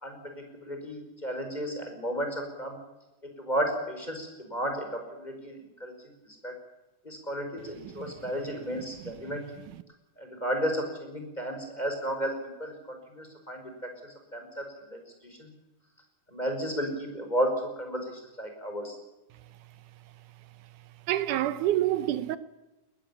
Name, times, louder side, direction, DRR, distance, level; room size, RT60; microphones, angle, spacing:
voice 1, 0.0-2.8 3.4-5.9 6.4-6.5 7.0-9.4 10.2-12.3 12.6-13.7 14.3-15.0 15.4-15.5 16.3-19.0, equal, 10° left, 5.2 m, -33 dB
voice 2, 7.8-8.1 8.7-9.2 9.7-9.8 21.1-22.4, right 13 dB, 80° right, 2.3 m, -29 dB
20.5 x 16.5 x 8.6 m
omnidirectional pair, 3.6 m